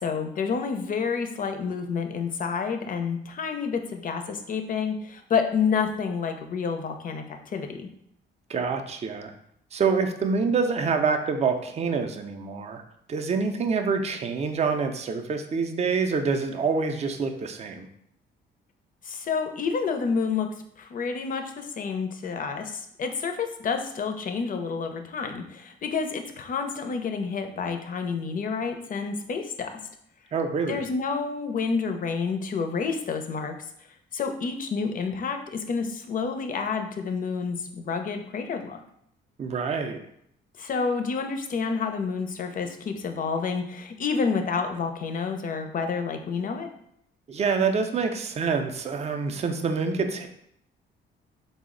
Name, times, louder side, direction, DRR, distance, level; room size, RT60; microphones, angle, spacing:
voice 1, 0.0-7.9 19.0-20.5 20.8-29.7 30.7-33.5 34.1-38.8 40.6-46.7, left 5 dB, 45° left, 6 dB, 0.5 m, -29 dB
voice 2, 8.5-9.3 9.7-12.8 13.1-17.9 30.3-30.8 39.4-40.0 47.3-50.3, right 5 dB, 35° right, 5 dB, 0.4 m, -26 dB
3.8 x 2.0 x 3.7 m, 0.71 s
cardioid pair, 90°, 20 cm